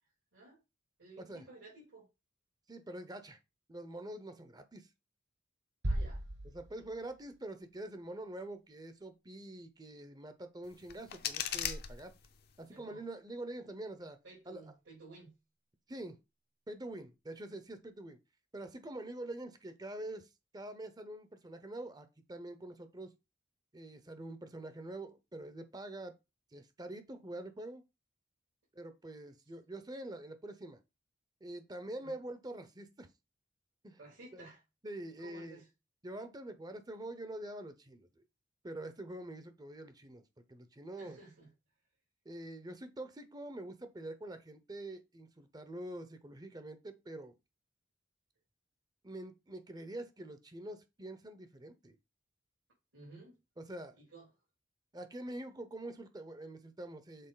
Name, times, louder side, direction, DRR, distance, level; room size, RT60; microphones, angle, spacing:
voice 1, 1.0-2.1 5.8-6.3 12.7-13.0 14.2-15.4 32.0-32.2 34.0-34.6 35.2-35.7 40.9-41.5 52.9-53.4 54.0-54.3, right 2 dB, 85° right, 3.8 m, -54 dB
voice 2, 2.7-3.4 3.7-4.9 6.5-12.1 12.6-14.2 14.5-14.6 15.9-16.2 16.7-18.2 18.5-20.3 20.5-23.1 23.7-26.1 26.5-27.8 28.8-30.8 31.4-33.1 33.8-34.0 34.3-34.5 34.8-35.6 36.0-38.2 38.6-40.2 40.5-41.2 42.2-47.3 49.0-52.0 53.6-54.0 54.9-57.3, right 1 dB, 20° right, 0.7 m, -45 dB
sound 1, 5.8-7.7, right 1 dB, 60° right, 1.7 m, -38 dB
sound 2, 10.6-12.6, left 9 dB, 55° left, 0.7 m, -40 dB
6.7 x 3.9 x 3.9 m
head